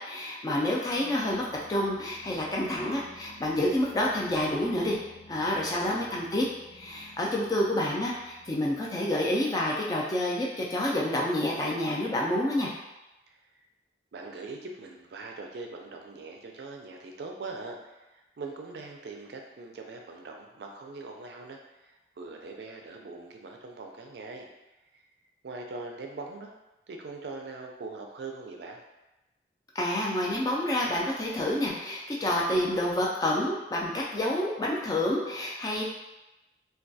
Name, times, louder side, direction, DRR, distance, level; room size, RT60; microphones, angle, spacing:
voice 1, 0.0-5.0 5.3-6.4 6.7-12.7 29.8-35.8, left 1 dB, 20° left, -3 dB, 0.3 m, -28 dB
sound 1, 0.7-9.5, left 2 dB, 90° left, 0.7 m, -55 dB
voice 2, 5.7-6.3 13.3-13.4 14.1-24.5 24.9-25.0 25.4-26.5 26.9-28.8, right 3 dB, 65° right, 2 dB, 0.4 m, -42 dB
2.3 x 2.2 x 2.6 m, 0.99 s
head